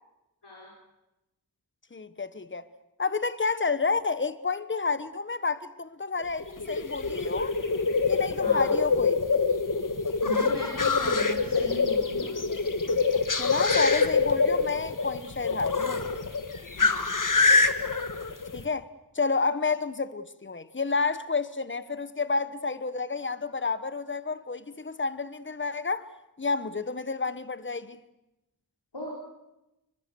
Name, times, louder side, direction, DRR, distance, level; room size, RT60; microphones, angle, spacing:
voice 1, 1.9-2.7 3.0-7.5 8.1-9.2 13.4-16.0 18.5-18.9 19.1-26.1 26.4-28.0, left 4 dB, 30° left, 1.1 m, -30 dB
sound 1, 6.2-18.7, left 4 dB, 50° left, 1.7 m, -25 dB
voice 2, 8.4-8.7 10.2-12.3 16.7-17.1 28.9-29.1, left 1 dB, 90° left, 5.1 m, -37 dB
28.0 x 23.5 x 6.9 m
wide cardioid pair, 65°, 39 cm